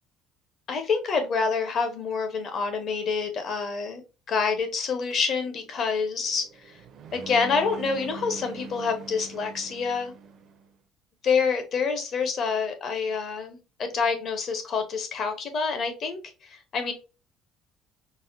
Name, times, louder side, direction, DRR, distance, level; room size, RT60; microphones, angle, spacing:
voice 1, 0.7-4.0 4.3-6.4 7.1-10.1 11.2-16.9, left 5 dB, 40° left, 0.7 m, -27 dB
sound 1, 5.1-10.7, right 5 dB, 50° right, 0.5 m, -43 dB
4.1 x 2.1 x 2.5 m
cardioid pair, 155°, 0 cm